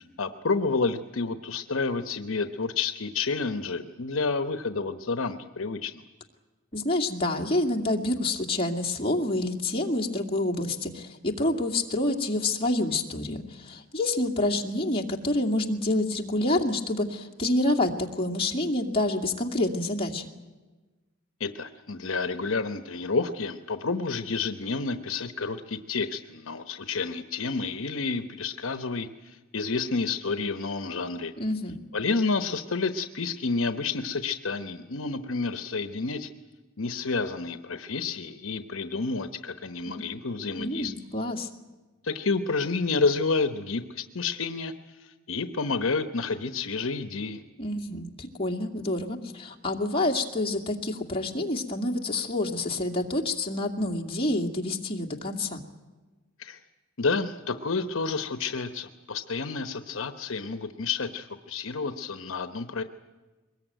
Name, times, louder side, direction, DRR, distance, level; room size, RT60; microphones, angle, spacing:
voice 1, 0.0-6.0 21.4-31.3 31.9-36.3 36.8-40.9 42.0-47.4 56.4-56.6 57.0-62.8, left 4 dB, 70° left, 9 dB, 1.0 m, -30 dB
voice 2, 6.7-20.3 31.4-31.8 39.9-40.0 40.6-41.5 47.6-55.6, left 2 dB, 25° left, 2 dB, 2.3 m, -28 dB
23.0 x 21.0 x 9.1 m, 1.2 s
head